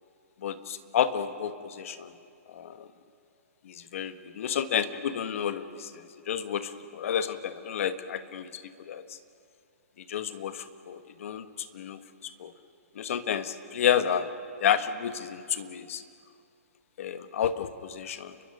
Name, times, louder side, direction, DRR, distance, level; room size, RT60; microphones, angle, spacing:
voice 1, 0.4-2.1 2.5-2.9 3.6-9.0 10.1-12.5 13.0-14.3 14.6-16.0 17.0-18.3, left 9 dB, 60° left, 10 dB, 1.4 m, -31 dB
29.5 x 23.0 x 5.5 m, 2.5 s
hypercardioid pair, 140°, 8 cm